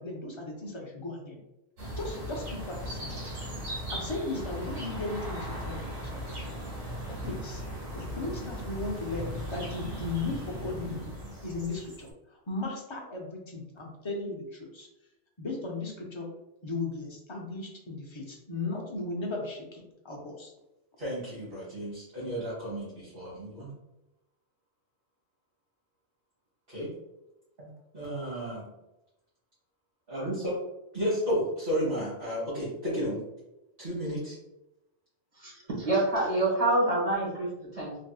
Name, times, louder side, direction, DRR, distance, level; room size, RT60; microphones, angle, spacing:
voice 1, 0.0-1.4 2.0-3.2 3.9-6.1 6.4-6.5 7.2-7.6 7.9-11.1 11.4-14.9 15.4-16.3 16.6-20.5, left 3 dB, 40° left, -1 dB, 0.4 m, -36 dB
sound 1, 1.8-12.1, equal, 85° right, 1.5 m, -38 dB
voice 2, 21.0-23.7 26.7-26.9 27.6-28.7 30.1-30.6 30.9-33.2 33.8-34.4, equal, 50° right, -10 dB, 1.3 m, -32 dB
voice 3, 35.8-38.0, right 2 dB, 35° right, -5 dB, 1.1 m, -26 dB
3.3 x 2.7 x 2.3 m, 0.92 s
omnidirectional pair, 1.2 m